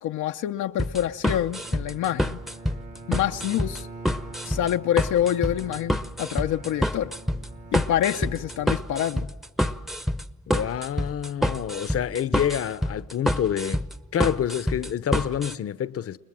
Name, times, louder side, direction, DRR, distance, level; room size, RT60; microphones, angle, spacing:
voice 1, 0.0-2.4 3.1-3.9 4.4-7.1 7.7-9.3, left 11 dB, 75° left, 0.8 m, -26 dB
sound 1, 0.8-15.5, equal, ahead, 0.9 m, -27 dB
Bowed string instrument, 1.0-9.5, right 3 dB, 25° right, 1.1 m, -45 dB
voice 2, 10.5-13.9 14.1-16.2, left 9 dB, 50° left, 0.9 m, -27 dB
29.5 x 20.5 x 7.6 m
cardioid pair, 90°, 30 cm